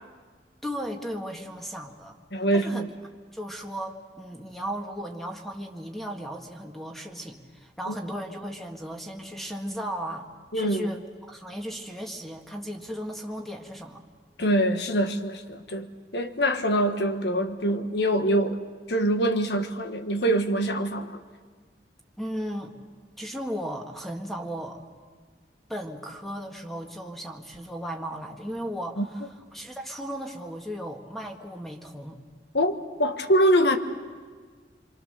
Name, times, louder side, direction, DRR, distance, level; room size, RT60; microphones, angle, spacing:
voice 1, 0.6-2.2 2.5-2.9 3.3-10.3 10.5-14.0 22.2-22.8 23.2-24.8 25.7-29.0 29.5-32.2, equal, ahead, 2 dB, 1.7 m, -36 dB
voice 2, 2.3-2.9 7.9-8.0 10.5-10.9 14.4-18.6 18.9-21.2 29.0-29.1 32.5-32.7 33.0-33.8, right 1 dB, 70° left, 7 dB, 1.4 m, -24 dB
27.5 x 23.5 x 6.7 m, 1.6 s
head